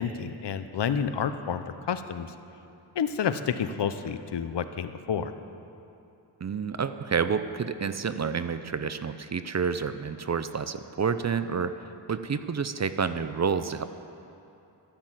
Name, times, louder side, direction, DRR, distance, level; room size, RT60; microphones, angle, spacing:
voice 1, 0.0-2.3 2.9-5.3, left 7 dB, 65° left, 10 dB, 0.8 m, -29 dB
voice 2, 6.4-11.7 12.1-13.8, right 6 dB, 40° right, 11 dB, 0.5 m, -29 dB
13.0 x 10.0 x 7.5 m, 2.7 s
wide cardioid pair, 85°, 45 cm